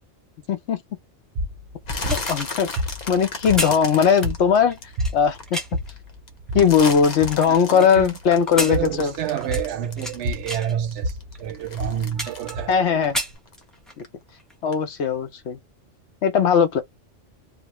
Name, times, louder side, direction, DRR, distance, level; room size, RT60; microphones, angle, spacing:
voice 1, 0.5-0.8 2.0-2.7 3.1-5.6 6.5-9.2 12.7-13.2 14.0-14.1 14.6-15.6 16.2-16.8, left 7 dB, 70° left, 1.0 m, -19 dB
sound 1, 1.3-13.3, equal, 45° right, 0.7 m, -32 dB
sound 2, 1.8-5.4 5.9-10.6 10.9-13.6 13.9-14.3 14.7-14.8, left 3 dB, 45° left, 0.7 m, -34 dB
sound 3, 2.1-5.9 6.5-7.9 8.3-10.2 10.5-10.7 11.3-11.4 11.7-12.8 13.0-14.0 14.4-14.6, equal, ahead, 0.5 m, -32 dB
voice 2, 7.5-8.1 8.5-11.1 11.4-12.7, right 10 dB, 75° right, 0.8 m, -28 dB
3.0 x 2.0 x 3.0 m
omnidirectional pair, 1.2 m